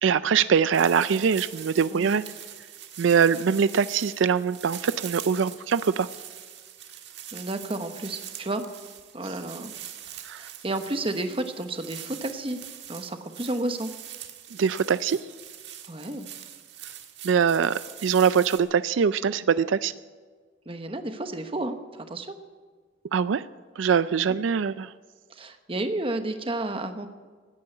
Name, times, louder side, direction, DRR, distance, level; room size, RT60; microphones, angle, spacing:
voice 1, 0.0-2.2 3.0-6.1 10.2-10.4 14.6-15.2 17.2-19.9 23.1-23.5 23.8-24.9, right 6 dB, 85° right, 15 dB, 0.4 m, -23 dB
sound 1, 0.7-18.6, right 10 dB, 65° right, 1.5 m, -43 dB
voice 2, 7.3-8.6 9.1-9.7 10.1-12.6 12.9-13.9 15.9-16.3 20.7-22.4 24.1-24.4 25.3-27.1, right 2 dB, 30° right, 8 dB, 1.0 m, -32 dB
16.5 x 9.4 x 9.1 m, 1.5 s
head